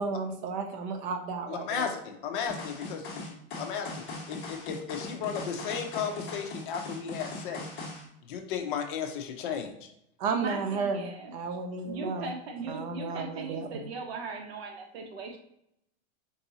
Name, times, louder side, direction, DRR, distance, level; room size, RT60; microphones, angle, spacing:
voice 1, 0.0-1.8 10.2-12.3 12.7-13.8, right 4 dB, 35° right, 5 dB, 0.5 m, -33 dB
voice 2, 1.5-3.2 3.6-7.7 8.3-9.9, left 7 dB, 50° left, 5 dB, 0.7 m, -34 dB
sound 1, 2.5-8.0, left 2 dB, 30° left, 1.2 m, -40 dB
voice 3, 10.3-11.3 11.8-15.4, right 3 dB, 65° right, 3 dB, 1.0 m, -38 dB
4.6 x 2.7 x 2.7 m, 0.78 s
supercardioid pair, 155°, 34 cm